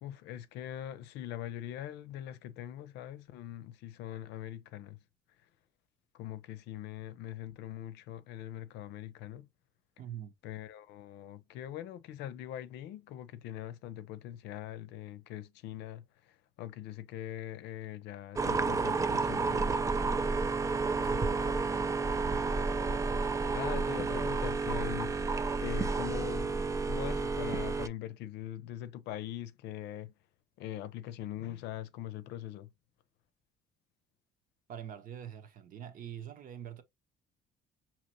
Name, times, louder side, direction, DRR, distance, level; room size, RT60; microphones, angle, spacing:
voice 1, 0.0-5.0 6.1-9.5 10.4-19.7 23.6-25.1 25.6-26.5 26.8-30.1 30.6-32.7, left 12 dB, 85° left, 0.6 m, -42 dB
voice 2, 10.0-10.3 21.0-21.8 34.7-36.8, right 9 dB, 55° right, 1.0 m, -44 dB
sound 1, 18.4-27.9, right 4 dB, 20° right, 0.4 m, -31 dB
5.3 x 2.9 x 3.0 m
cardioid pair, 110°, 17 cm